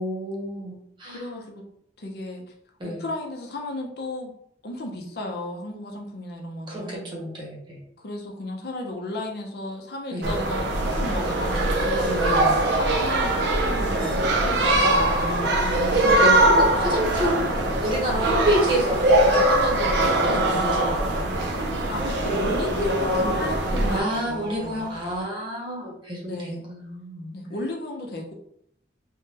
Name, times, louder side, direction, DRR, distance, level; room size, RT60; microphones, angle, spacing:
voice 1, 0.0-1.2 2.8-3.0 6.7-7.8 10.1-10.3 12.0-12.6 15.3-17.5 17.8-21.2 23.9-27.3, equal, 25° right, -3 dB, 0.8 m, -29 dB
voice 2, 1.1-1.6 2.0-2.4 2.8-4.3 4.6-7.1 8.0-12.2 12.8-15.5 21.9-24.8 26.3-26.7 27.3-28.3, left 1 dB, 60° left, 1 dB, 0.6 m, -34 dB
sound 1, 10.2-24.0, right 1 dB, 70° right, 0.5 m, -22 dB
sound 2, 10.9-25.2, equal, 10° left, 1.2 m, -41 dB
3.4 x 2.2 x 2.8 m, 0.70 s
head